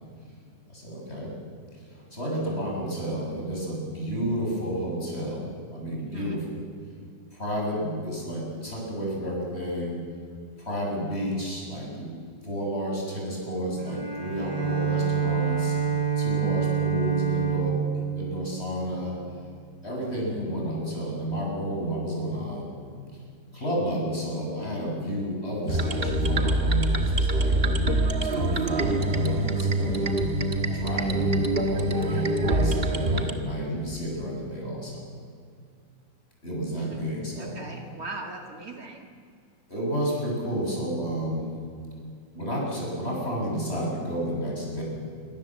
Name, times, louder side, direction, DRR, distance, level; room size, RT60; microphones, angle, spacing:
voice 1, 0.7-1.3 1.7-6.6 7.3-10.0 10.6-12.1 12.4-15.8 16.2-17.8 18.1-19.2 19.8-22.8 23.5-27.5 28.2-30.1 30.7-31.3 31.6-35.0 36.4-37.6 39.7-41.5 42.3-44.8, equal, 30° left, -2 dB, 8.1 m, -31 dB
voice 2, 6.0-6.4 36.8-37.0 37.4-39.1, right 3 dB, 50° right, 2 dB, 2.6 m, -39 dB
Bowed string instrument, 13.8-19.3, right 7 dB, 70° right, 5.9 m, -27 dB
sound 1, 25.7-33.3, right 1 dB, 35° right, 1.7 m, -24 dB
27.0 x 25.0 x 7.7 m, 2.3 s
omnidirectional pair, 2.0 m